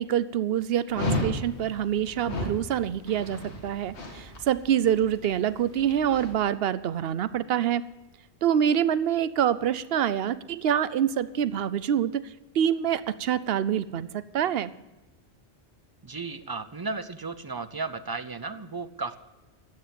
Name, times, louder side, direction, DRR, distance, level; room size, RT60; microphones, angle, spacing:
voice 1, 0.0-7.8 8.4-12.3 12.5-14.7, right 9 dB, 65° right, 16 dB, 0.8 m, -26 dB
Dog, 0.9-6.3, left 1 dB, 80° left, 1.8 m, -34 dB
voice 2, 16.0-19.2, right 4 dB, 30° right, 13 dB, 0.5 m, -34 dB
13.5 x 9.3 x 6.9 m, 1.1 s
omnidirectional pair, 1.1 m